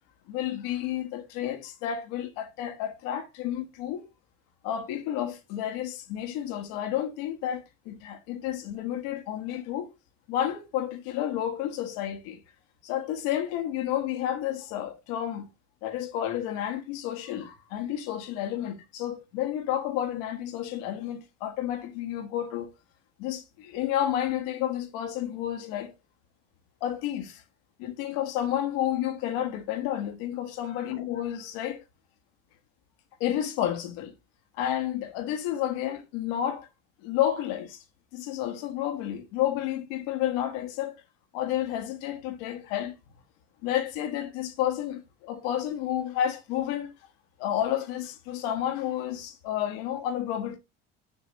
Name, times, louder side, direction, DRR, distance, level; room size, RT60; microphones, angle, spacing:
voice 1, 0.3-4.1 4.6-9.9 10.3-12.4 12.8-15.5 15.8-22.7 23.2-25.9 26.8-27.4 27.8-31.8 33.2-34.1 34.6-36.7 37.0-37.8 38.1-40.9 41.3-42.9 43.6-46.9 47.4-50.6, left 11 dB, 70° left, 1.5 m, -31 dB
6.9 x 6.2 x 3.0 m
hypercardioid pair, 75°, 32 cm